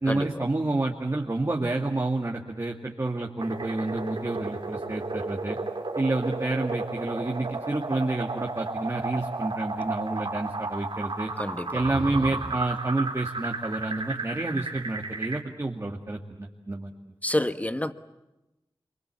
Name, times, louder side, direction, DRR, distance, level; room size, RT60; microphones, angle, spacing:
voice 1, 0.0-5.6 6.0-11.3 11.7-16.9, right 2 dB, 35° right, 2.2 m, -29 dB
sound 1, 3.4-15.4, right 3 dB, 70° right, 3.1 m, -33 dB
sound 2, 11.6-12.8, right 2 dB, 50° right, 2.0 m, -36 dB
voice 2, 17.2-17.9, left 1 dB, 15° left, 1.1 m, -27 dB
27.5 x 23.5 x 8.4 m
wide cardioid pair, 70°, 9 cm